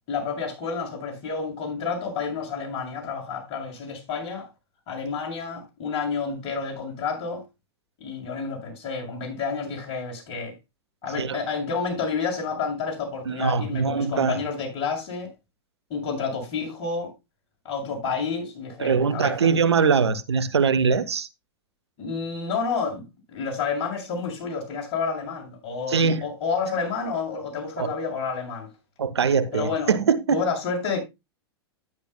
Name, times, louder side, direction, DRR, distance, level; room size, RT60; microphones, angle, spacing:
voice 1, 0.1-4.5 4.9-7.4 8.0-10.6 11.0-15.3 15.9-17.1 17.6-19.5 22.0-28.7 29.5-29.9 30.3-31.0, left 5 dB, 45° left, 7.2 m, -30 dB
voice 2, 13.2-14.4 18.8-21.3 25.9-26.3 27.8-27.9 29.0-30.4, right 5 dB, 80° right, 1.0 m, -22 dB
12.5 x 10.5 x 2.2 m
hypercardioid pair, 100°, 14 cm